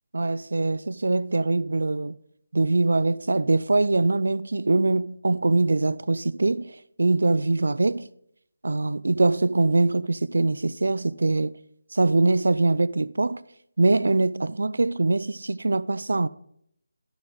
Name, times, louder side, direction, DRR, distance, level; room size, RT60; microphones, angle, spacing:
voice 1, 0.1-2.2 2.5-8.1 8.6-11.5 11.9-13.4 13.8-16.3, right 2 dB, 85° right, 0.3 m, -23 dB
11.0 x 7.8 x 3.8 m
figure-of-eight pair, 175°, 0 cm